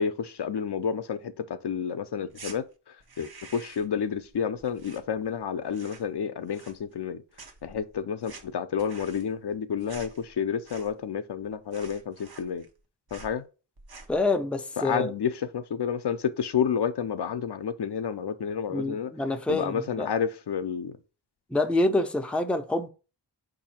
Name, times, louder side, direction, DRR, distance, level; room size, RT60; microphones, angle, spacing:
voice 1, 0.0-7.2 7.6-12.7 13.1-13.4 14.8-19.1 19.5-20.9, left 7 dB, 65° left, 0.6 m, -30 dB
sound 1, 2.3-2.6 3.0-4.0 4.2-5.4 5.7-6.2 6.5-7.1 7.3-11.1 11.4-11.5 11.7-12.8 13.1-13.4 13.8-14.2, right 3 dB, 55° right, 0.9 m, -48 dB
voice 2, 14.1-15.1 18.7-20.1 21.5-22.9, left 2 dB, 5° left, 0.5 m, -26 dB
4.7 x 2.6 x 4.2 m
wide cardioid pair, 80°, 43 cm